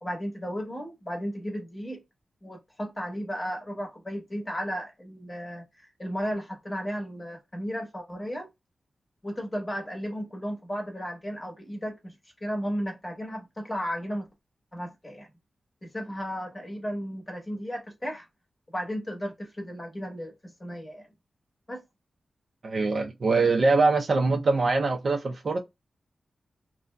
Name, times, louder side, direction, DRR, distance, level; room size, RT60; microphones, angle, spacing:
voice 1, 0.0-2.0 2.4-8.5 9.2-12.1 12.4-14.3 14.7-15.3 15.8-18.3 18.7-21.1 21.7-21.8, equal, 20° left, 1.0 m, -34 dB
voice 2, 22.6-25.6, right 3 dB, 50° right, 0.6 m, -23 dB
2.8 x 2.6 x 2.2 m
wide cardioid pair, 135°, 0 cm